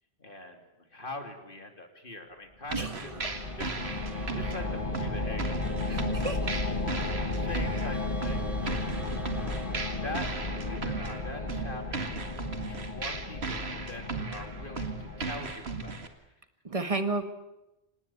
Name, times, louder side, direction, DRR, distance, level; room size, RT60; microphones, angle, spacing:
voice 1, 0.2-9.4 9.7-12.1 12.7-16.0, left 2 dB, 55° left, 4 dB, 3.1 m, -44 dB
voice 2, 2.7-3.1 5.9-6.6 16.6-17.3, right 3 dB, 35° right, 8 dB, 1.8 m, -32 dB
sound 1, 2.7-16.1, right 4 dB, 80° right, 2.2 m, -37 dB
sound 2, 2.8-15.5, left 2 dB, 40° left, 1.8 m, -34 dB
sound 3, 2.9-12.5, right 1 dB, ahead, 2.3 m, -51 dB
26.0 x 19.0 x 8.7 m, 0.95 s
omnidirectional pair, 1.1 m